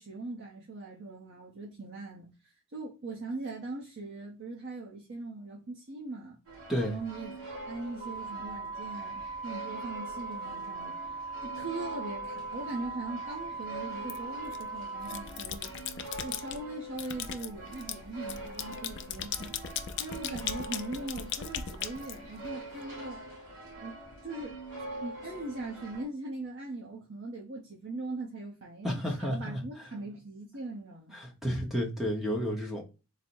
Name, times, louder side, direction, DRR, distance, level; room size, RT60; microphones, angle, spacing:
voice 1, 0.0-6.4 6.9-7.4 7.7-15.7 16.2-19.5 20.0-23.2 23.8-23.9 24.2-24.6 25.0-31.2, right 2 dB, 60° right, 0.8 m, -40 dB
sound 1, 6.4-26.0, right 1 dB, 90° right, 2.2 m, -44 dB
sound 2, 8.0-15.2, right 4 dB, 20° right, 0.3 m, -39 dB
foley cat kitten licks licking up milk India, 14.1-14.6 15.0-16.6 17.0-22.7, left 9 dB, 55° left, 0.5 m, -38 dB
voice 2, 28.8-29.6 31.1-32.8, equal, ahead, 0.8 m, -31 dB
3.9 x 2.1 x 4.4 m
head